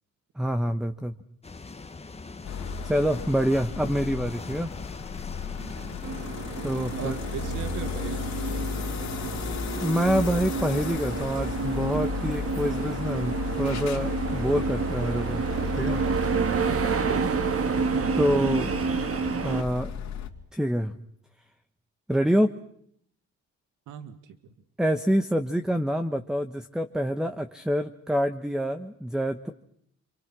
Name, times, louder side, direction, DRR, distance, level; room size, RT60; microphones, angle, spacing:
voice 1, 0.4-1.2 2.8-4.7 6.6-7.2 9.8-15.4 15.8-16.0 18.1-18.7 19.4-19.9 20.5-20.9 22.1-22.5 24.8-29.5, equal, ahead, 8 dB, 1.3 m, -26 dB
sound 1, 1.4-8.7, left 3 dB, 20° left, 1.5 m, -41 dB
sound 2, 2.4-20.3, left 5 dB, 65° left, 3.2 m, -34 dB
voice 2, 5.6-6.0 6.9-8.8 16.5-17.8 23.9-24.4, right 8 dB, 85° right, 10 dB, 2.1 m, -40 dB
sound 3, 6.0-19.6, right 5 dB, 50° right, 1.8 m, -29 dB
29.5 x 24.5 x 6.3 m, 0.69 s
cardioid pair, 90°, 30 cm